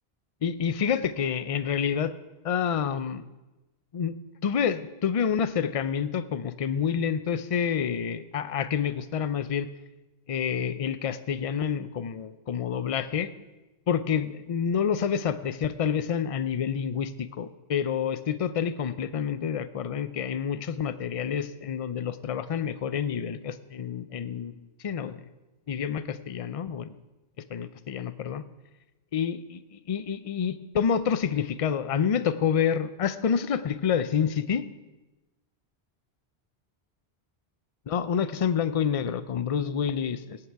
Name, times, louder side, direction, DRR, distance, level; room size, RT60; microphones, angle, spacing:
voice 1, 0.4-2.1 2.4-3.2 3.9-4.2 4.4-9.7 10.3-13.3 13.9-24.5 24.8-25.2 25.7-27.0 27.5-28.4 29.1-34.7 37.9-40.4, left 7 dB, 45° left, 14 dB, 0.5 m, -28 dB
18.0 x 8.7 x 4.7 m, 1.1 s
omnidirectional pair, 1.1 m